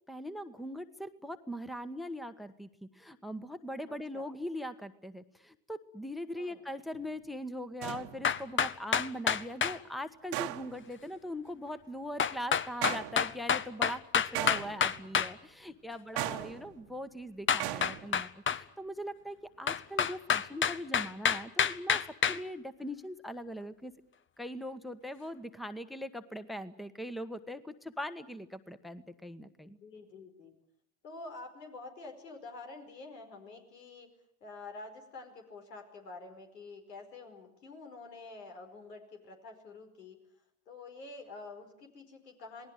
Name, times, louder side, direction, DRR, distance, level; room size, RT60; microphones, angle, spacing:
voice 1, 0.1-22.0 22.3-23.9 24.4-29.8, equal, ahead, 12 dB, 1.3 m, -41 dB
voice 2, 3.9-4.3 6.3-6.6 15.9-16.7 29.6-30.5 31.0-34.1 34.4-40.2 40.7-42.7, left 3 dB, 90° left, 4 dB, 5.1 m, -48 dB
sound 1, 6.9-7.1 7.8-8.5 10.3-10.9 12.8-13.5 14.3-15.2 16.2-17.0 17.6-18.1, right 17 dB, 60° right, 1.6 m, -38 dB
sound 2, 8.2-9.8 12.2-15.3 17.5-18.6 19.7-22.4, left 7 dB, 25° left, 0.9 m, -28 dB
27.5 x 19.0 x 9.2 m, 0.73 s
hypercardioid pair, 85°, 47 cm